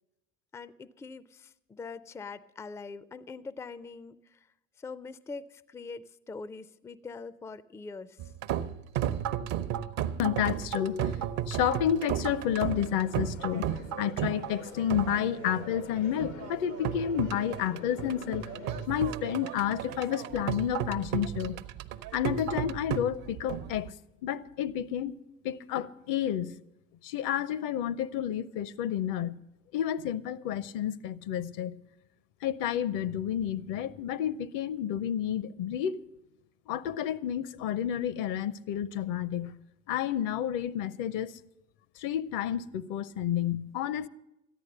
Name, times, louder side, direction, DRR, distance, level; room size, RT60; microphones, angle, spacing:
voice 1, 0.5-4.5 4.8-8.3, left 4 dB, 10° left, 0.4 m, -43 dB
sound 1, 8.2-23.9, right 10 dB, 55° right, 0.8 m, -34 dB
voice 2, 10.2-11.2 11.5-13.7 14.0-18.4 18.9-21.6 22.1-23.9 24.2-25.2 25.4-26.5 27.0-29.4 29.7-31.8 32.4-36.0 36.7-39.5 39.9-41.3 42.0-44.1, left 10 dB, 55° left, 0.7 m, -30 dB
sound 2, 12.4-18.9, left 6 dB, 85° left, 1.1 m, -46 dB
14.0 x 10.0 x 6.6 m
hypercardioid pair, 70°, 38 cm